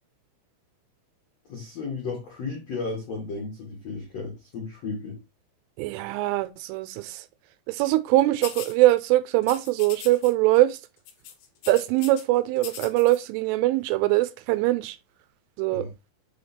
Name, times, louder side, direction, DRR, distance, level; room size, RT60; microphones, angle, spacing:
voice 1, 1.5-5.2 15.7-15.9, left 4 dB, 85° left, 1.4 m, -34 dB
voice 2, 5.8-7.2 7.7-10.8 11.7-15.0 15.6-15.9, right 17 dB, 85° right, 3.1 m, -22 dB
sound 1, 8.4-8.8 9.4-10.3 10.6-10.8 11.1-12.2 12.6-13.2, left 8 dB, 70° left, 2.8 m, -40 dB
7.1 x 3.4 x 4.3 m
omnidirectional pair, 5.8 m